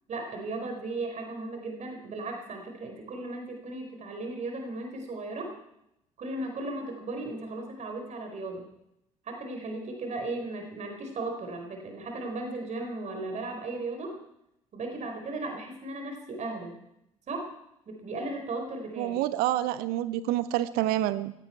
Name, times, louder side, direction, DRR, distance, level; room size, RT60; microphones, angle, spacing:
voice 1, 0.1-5.5 6.2-8.7 9.2-14.2 14.7-16.8 17.3-17.5 17.9-19.2, right 2 dB, 40° right, 3 dB, 4.5 m, -36 dB
voice 2, 19.0-21.3, right 14 dB, 60° right, 16 dB, 0.8 m, -28 dB
18.0 x 16.5 x 4.5 m, 0.82 s
figure-of-eight pair, 55°, 18 cm